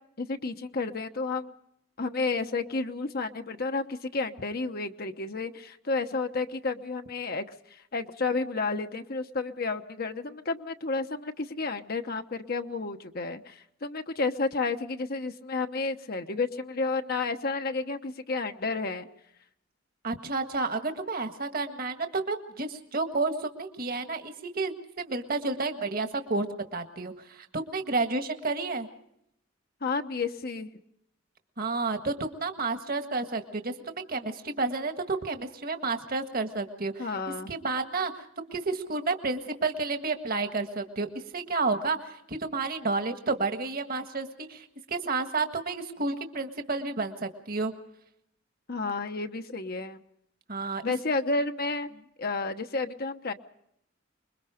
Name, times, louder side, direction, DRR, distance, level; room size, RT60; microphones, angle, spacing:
voice 1, 0.2-1.5 2.0-7.4 7.7-19.1 29.8-30.7 37.0-37.5 48.7-50.0 50.8-51.9 52.2-53.3, left 3 dB, 50° left, 6 dB, 1.0 m, -31 dB
voice 2, 20.0-26.5 26.7-28.9 31.6-37.1 37.5-47.7 50.5-50.9, right 3 dB, 50° right, 7 dB, 1.7 m, -31 dB
26.0 x 22.0 x 5.1 m, 0.76 s
head